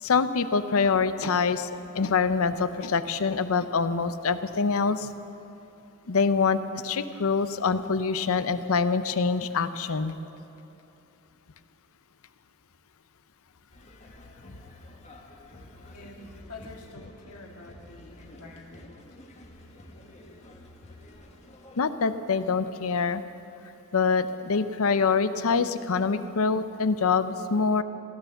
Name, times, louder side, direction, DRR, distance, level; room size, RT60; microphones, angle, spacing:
voice 1, 0.0-1.7 1.9-5.1 6.1-10.2 21.8-23.2 23.9-27.8, left 5 dB, 70° left, 12 dB, 0.7 m, -25 dB
sound 1, 13.7-21.8, left 1 dB, 30° left, 1.4 m, -50 dB
voice 2, 15.9-18.9, left 2 dB, 85° left, -1 dB, 2.1 m, -46 dB
16.0 x 11.5 x 6.9 m, 2.8 s
head